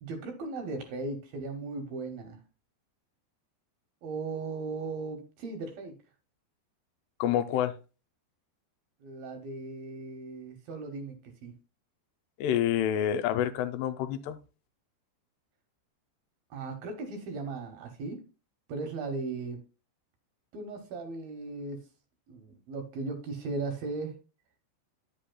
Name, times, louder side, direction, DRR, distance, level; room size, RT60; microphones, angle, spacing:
voice 1, 0.0-2.4 4.0-6.0 9.0-11.5 16.5-18.2 18.7-19.6 20.5-21.9 22.3-24.2, right 3 dB, 70° right, 2.5 m, -37 dB
voice 2, 7.2-7.8 12.4-14.4, left 10 dB, 85° left, 2.6 m, -28 dB
9.9 x 7.8 x 2.2 m
omnidirectional pair, 4.9 m